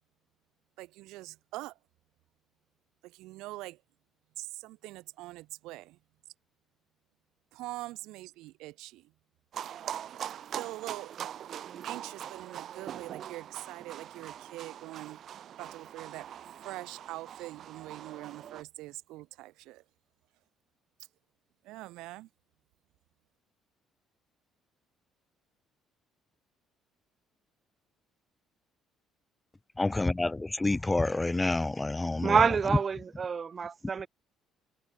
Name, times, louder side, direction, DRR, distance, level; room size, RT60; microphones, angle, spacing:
voice 1, 0.8-1.8 3.0-3.8 4.4-6.0 7.5-9.1 10.5-11.1 11.8-15.2 15.6-16.3 16.6-19.8 21.6-22.3, right 19 dB, 90° right, 2.5 m, -43 dB
sound 1, 9.5-18.6, right 10 dB, 50° right, 6.9 m, -42 dB
voice 2, 29.8-32.4, left 2 dB, 10° left, 0.7 m, -28 dB
voice 3, 32.2-34.1, right 6 dB, 30° right, 1.4 m, -27 dB
cardioid pair, 135°, 0 cm